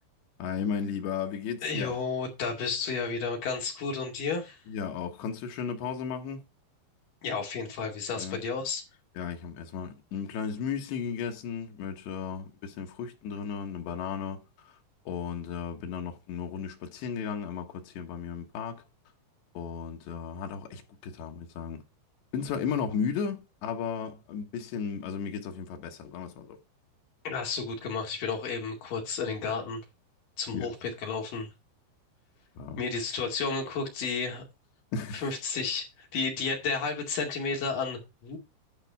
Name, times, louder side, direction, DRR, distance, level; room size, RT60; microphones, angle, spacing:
voice 1, 0.4-2.0 4.7-6.4 8.2-8.4 9.2-14.4 15.1-18.8 19.6-21.8 22.3-26.6 30.5-30.7 32.6-32.8 34.9-35.2, left 6 dB, 80° left, 3.6 m, -34 dB
voice 2, 1.6-4.6 7.2-8.8 27.2-29.8 30.4-31.5 32.8-34.4 35.1-38.4, left 4 dB, 55° left, 3.7 m, -32 dB
11.5 x 4.6 x 5.7 m
omnidirectional pair, 4.9 m